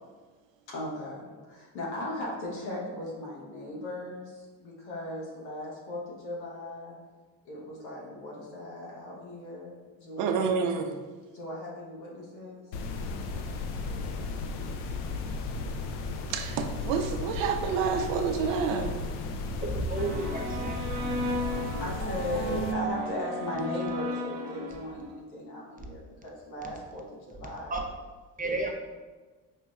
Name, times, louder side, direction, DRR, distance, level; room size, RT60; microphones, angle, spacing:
voice 1, 0.7-6.9 7.4-10.7 11.3-12.8 21.8-27.8 28.4-28.7, left 1 dB, 90° left, -4 dB, 1.1 m, -38 dB
voice 2, 10.2-10.9 16.3-19.0, right 6 dB, 60° right, 6 dB, 0.6 m, -28 dB
sound 1, 12.7-22.7, left 3 dB, 70° left, 0.6 m, -35 dB
voice 3, 19.5-21.3 27.7-27.8 28.4-28.7, right 2 dB, 20° right, 2 dB, 0.5 m, -33 dB
sound 2, 20.0-25.2, equal, 40° right, 0.9 m, -34 dB
4.7 x 2.9 x 2.3 m, 1.3 s
hypercardioid pair, 60°, 50 cm